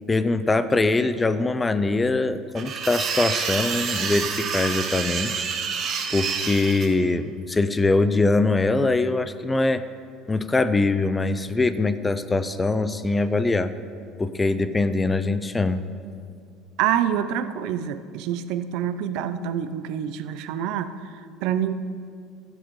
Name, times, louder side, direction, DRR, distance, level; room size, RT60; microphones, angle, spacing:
voice 1, 0.1-5.4 6.1-9.8 10.3-13.7 14.2-15.8, left 3 dB, 15° left, 12 dB, 0.4 m, -22 dB
sound 1, 2.6-6.9, right 6 dB, 40° right, 0.9 m, -28 dB
voice 2, 16.8-21.1 21.4-21.7, right 9 dB, 70° right, 10 dB, 0.5 m, -26 dB
15.5 x 7.1 x 3.1 m, 2.3 s
cardioid pair, 135°, 0 cm